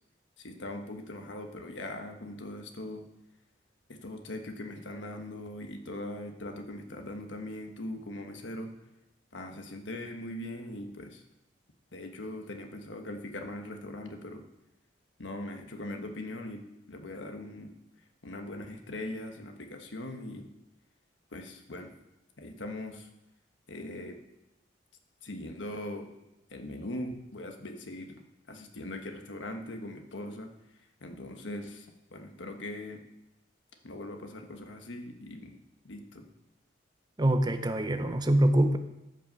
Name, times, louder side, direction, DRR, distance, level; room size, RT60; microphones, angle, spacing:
voice 1, 0.4-3.1 3.9-8.7 9.3-11.2 11.9-14.4 15.2-16.6 16.9-17.7 18.2-20.5 21.3-21.9 22.4-23.1 23.7-24.2 25.2-26.1 26.5-30.5 31.0-33.0 33.8-35.5 35.8-36.2, left 1 dB, 85° left, 5 dB, 1.3 m, -40 dB
voice 2, 37.2-38.8, right 1 dB, 25° right, 9 dB, 0.6 m, -24 dB
13.0 x 5.6 x 5.3 m, 0.92 s
head